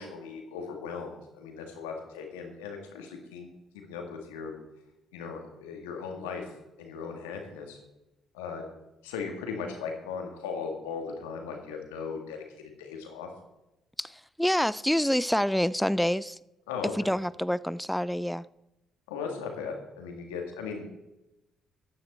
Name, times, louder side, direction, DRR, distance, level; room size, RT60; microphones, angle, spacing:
voice 1, 0.0-3.5 3.7-4.5 5.1-7.8 8.3-8.6 9.0-13.3 16.7-17.1 19.1-20.9, left 5 dB, 80° left, 3 dB, 1.9 m, -38 dB
voice 2, 14.0-16.4 16.9-18.5, equal, 5° left, 18 dB, 0.3 m, -27 dB
14.0 x 9.5 x 4.2 m, 0.95 s
hypercardioid pair, 45°, 0 cm